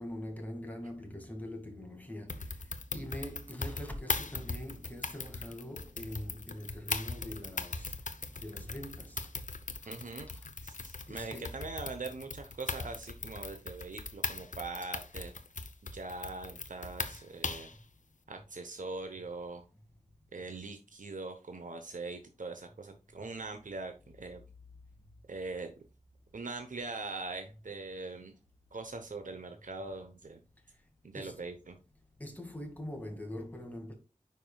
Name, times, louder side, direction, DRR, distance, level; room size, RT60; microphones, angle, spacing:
voice 1, 0.0-9.3 9.8-9.9 11.1-11.6 31.1-31.5 32.2-33.9, left 1 dB, 10° left, 2.2 m, -43 dB
sound 1, 2.3-17.8, left 4 dB, 75° left, 0.8 m, -39 dB
voice 2, 9.9-10.3 10.6-15.3 15.9-17.7 18.3-19.6 20.3-24.4 25.3-25.7 26.3-28.3 28.7-30.4 31.0-31.7, right 3 dB, 80° right, 1.0 m, -42 dB
9.3 x 5.4 x 2.3 m
wide cardioid pair, 65°, 13 cm